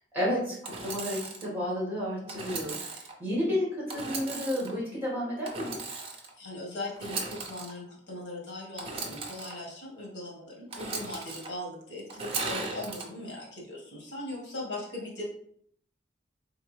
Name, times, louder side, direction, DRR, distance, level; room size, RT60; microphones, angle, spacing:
voice 1, 0.1-5.8, equal, 10° right, -6 dB, 1.6 m, -31 dB
Engine / Sawing, 0.6-1.5 2.3-3.1 3.9-4.7 5.4-6.3 6.9-7.7 8.8-9.5 10.7-11.5 12.1-13.0, right 3 dB, 30° right, 0.6 m, -37 dB
voice 2, 6.4-15.3, left 1 dB, 80° left, -3 dB, 1.5 m, -39 dB
3.6 x 3.5 x 3.2 m, 0.65 s
head